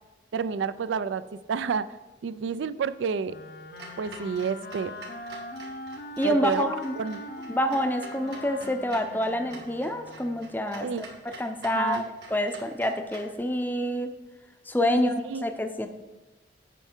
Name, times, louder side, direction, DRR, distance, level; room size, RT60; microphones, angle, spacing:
voice 1, 0.3-1.9 2.2-3.4 4.0-4.9 6.2-6.7 7.0-7.2 10.8-11.0 11.7-12.1 14.8-15.4, right 5 dB, 85° right, 15 dB, 0.4 m, -30 dB
Wind instrument woodwind instrument, 3.2-10.6, left 2 dB, 55° left, 0.6 m, -41 dB
Clock, 3.8-13.3, right 3 dB, 60° right, 1.7 m, -47 dB
voice 2, 6.2-6.9 7.5-12.0 12.3-14.1 14.7-15.9, equal, 10° left, 7 dB, 0.5 m, -27 dB
9.0 x 5.7 x 4.4 m, 1.2 s
head